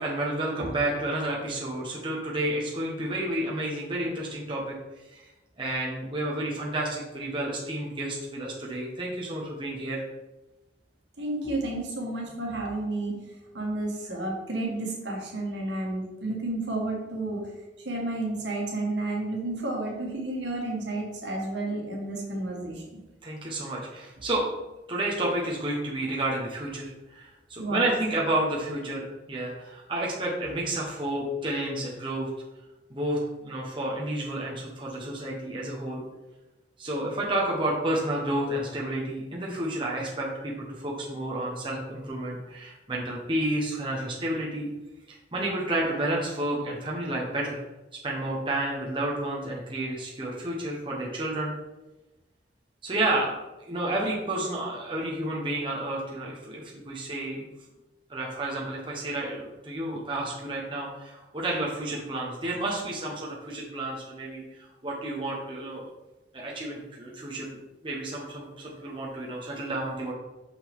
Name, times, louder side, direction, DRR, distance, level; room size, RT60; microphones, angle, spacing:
voice 1, 0.0-4.7 5.1-5.3 5.6-10.0 23.2-24.5 24.9-32.3 32.9-36.0 36.8-44.7 45.1-47.6 48.0-51.5 52.8-53.3 53.6-57.4 58.1-65.9 66.3-67.6 67.8-70.1, right 1 dB, 30° right, -3 dB, 1.1 m, -31 dB
voice 2, 11.2-13.2 13.5-17.4 17.8-22.8 27.6-27.9, right 2 dB, 75° right, -1 dB, 1.7 m, -31 dB
5.8 x 5.6 x 3.6 m, 1.1 s
head